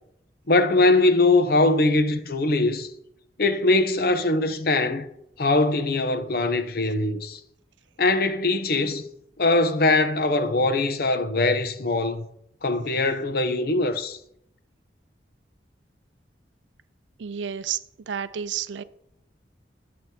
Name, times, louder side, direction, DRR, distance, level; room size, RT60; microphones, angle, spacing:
voice 1, 0.5-2.9 3.4-5.1 5.4-7.4 8.0-9.0 9.4-12.3 12.6-14.2, left 2 dB, 55° left, 0.7 m, -21 dB
voice 2, 17.2-17.8 18.1-18.8, right 8 dB, 85° right, 0.4 m, -30 dB
10.5 x 7.6 x 2.8 m
head